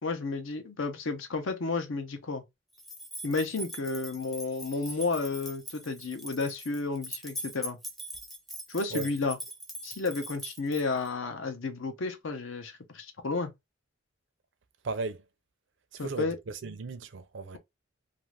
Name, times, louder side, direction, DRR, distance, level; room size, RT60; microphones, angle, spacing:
voice 1, 0.0-2.4 3.2-7.8 8.7-9.4 9.8-13.5 16.0-16.4, left 3 dB, 70° left, 0.7 m, -32 dB
sound 1, 2.8-11.1, equal, ahead, 0.5 m, -42 dB
voice 2, 14.8-15.2 15.9-17.6, right 3 dB, 60° right, 0.5 m, -36 dB
2.5 x 2.4 x 3.1 m
head